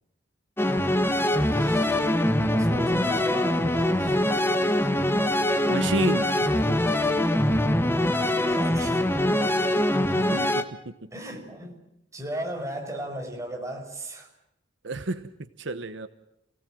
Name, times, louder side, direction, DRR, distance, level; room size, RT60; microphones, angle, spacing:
sound 1, 0.6-10.6, left 1 dB, 10° left, 1.4 m, -23 dB
voice 1, 1.4-2.1 2.5-4.2 8.2-9.2 11.1-11.8 12.1-14.3, right 1 dB, 15° right, 2 dB, 5.2 m, -36 dB
voice 2, 5.6-6.3 10.2-10.9 14.8-15.3 15.6-16.1, right 2 dB, 70° right, 11 dB, 1.1 m, -30 dB
28.0 x 18.0 x 7.6 m, 0.81 s
head